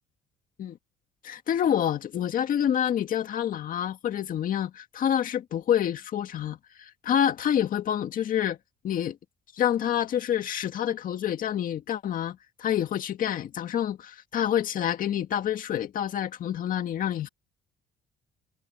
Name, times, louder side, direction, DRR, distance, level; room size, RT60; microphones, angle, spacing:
voice 1, 1.2-8.6 8.8-9.2 9.5-17.3, left 10 dB, 55° left, 2.0 m, -27 dB
cardioid pair, 110°, 17 cm